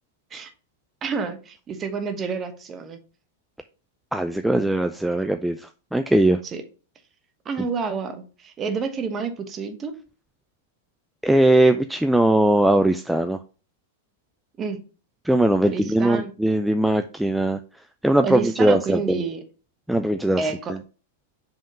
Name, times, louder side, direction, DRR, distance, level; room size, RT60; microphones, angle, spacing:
voice 1, 1.0-3.0 6.5-6.6 7.4-10.0 14.6-14.8 15.6-16.3 18.2-19.4 20.4-20.7, right 5 dB, 25° right, 1.2 m, -29 dB
voice 2, 4.1-6.4 11.2-13.4 15.2-17.6 18.0-19.0 19.9-20.8, right 1 dB, 5° right, 0.4 m, -20 dB
5.4 x 3.6 x 5.2 m
hypercardioid pair, 110°, 0 cm